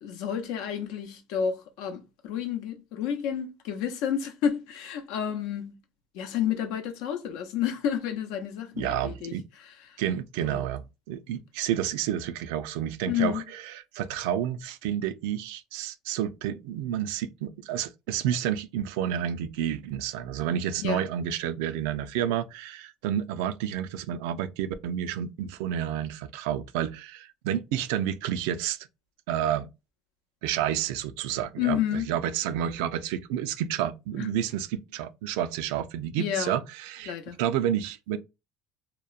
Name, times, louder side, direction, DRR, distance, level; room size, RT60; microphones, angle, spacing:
voice 1, 0.0-5.8 6.1-9.3 9.6-10.0 10.4-10.6 13.1-13.4 20.8-21.0 31.6-32.1 34.2-34.3 36.2-36.6 37.1-37.4, left 9 dB, 80° left, 0.6 m, -30 dB
voice 2, 8.7-9.5 10.0-28.9 29.3-29.7 30.4-37.1 37.4-38.2, right 10 dB, 85° right, 0.3 m, -30 dB
2.9 x 2.1 x 2.3 m
supercardioid pair, 110°, 0 cm